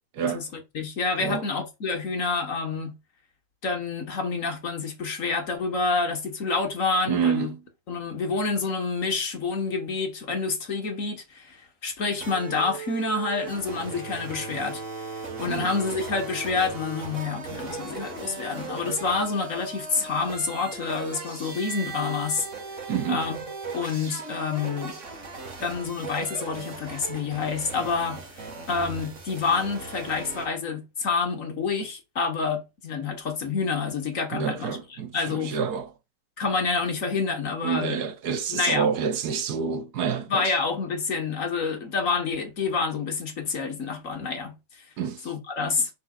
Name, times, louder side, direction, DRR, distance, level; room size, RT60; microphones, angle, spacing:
voice 1, 0.2-3.0 3.6-7.5 7.9-14.8 15.4-22.5 23.1-23.4 23.7-25.0 25.6-34.8 35.1-35.6 36.4-38.0 38.5-38.9 40.3-44.6 45.2-45.9, left 4 dB, 50° left, 1.7 m, -28 dB
voice 2, 7.1-7.6 15.5-15.7 22.9-23.2 34.3-35.9 37.6-40.5 45.0-45.3, right 7 dB, 70° right, 1.4 m, -28 dB
sound 1, 12.2-30.5, right 4 dB, 45° right, 1.9 m, -38 dB
6.8 x 6.0 x 2.4 m
omnidirectional pair, 1.8 m